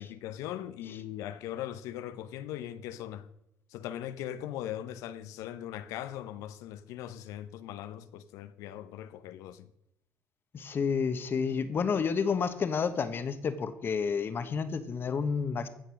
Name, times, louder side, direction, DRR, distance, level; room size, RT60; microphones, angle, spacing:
voice 1, 0.0-3.3 3.7-9.7, left 11 dB, 80° left, 0.7 m, -40 dB
voice 2, 10.5-15.7, left 6 dB, 40° left, 1.2 m, -30 dB
15.5 x 5.4 x 6.4 m
cardioid pair, 95°, 6 cm